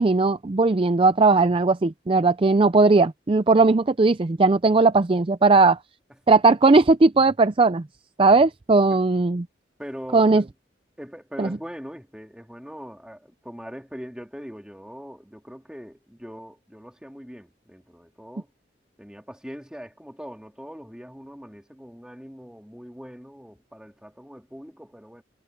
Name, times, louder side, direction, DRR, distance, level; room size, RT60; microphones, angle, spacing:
voice 1, 0.0-5.8 6.3-7.8 8.2-9.5 10.1-10.4 11.4-11.5, right 3 dB, 30° right, 0.4 m, -18 dB
voice 2, 9.8-10.5 11.0-18.5 19.0-25.2, equal, 5° right, 3.6 m, -41 dB
head